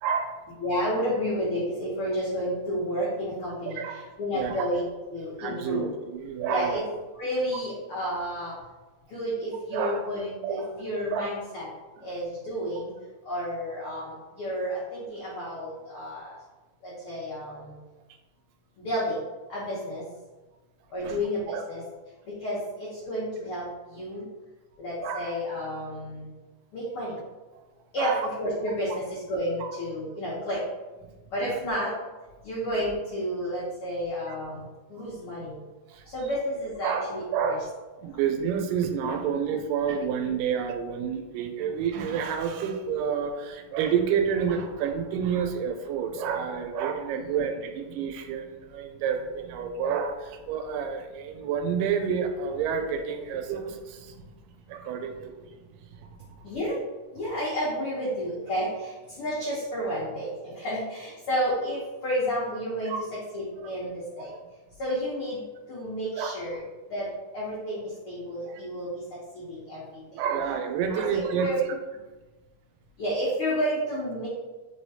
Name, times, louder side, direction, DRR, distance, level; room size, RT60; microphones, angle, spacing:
voice 1, 0.0-0.5 3.7-4.0 4.3-4.6 5.4-6.8 9.7-10.1 10.4-10.8 11.1-11.2 21.0-21.2 21.5-21.6 25.0-25.4 28.0-28.3 29.6-29.7 31.4-31.6 34.3-34.4 35.0-35.2 35.9-36.1 36.8-37.7 38.0-54.3 54.7-55.6 55.9-56.3 62.9-63.0 63.6-63.7 64.3-64.4 66.2-66.6 68.5-68.6 70.1-71.5, right 7 dB, 90° right, 5 dB, 2.2 m, -29 dB
voice 2, 0.6-4.8 5.1-5.9 6.5-6.8 7.2-8.5 9.1-11.7 12.0-12.9 13.2-16.3 16.8-17.8 18.8-19.2 19.5-20.0 20.9-21.8 22.4-24.2 24.8-26.3 26.7-27.2 27.9-28.1 28.4-30.6 31.3-31.9 32.4-35.6 36.1-37.6 47.1-47.4 56.4-56.8 57.1-62.9 63.3-64.3 64.8-65.4 65.7-66.6 66.9-67.1 67.3-69.0 69.3-70.0 71.1-71.6 73.0-74.3, equal, 80° left, -8 dB, 1.2 m, -31 dB
4.9 x 3.3 x 2.7 m, 1.2 s
omnidirectional pair, 3.8 m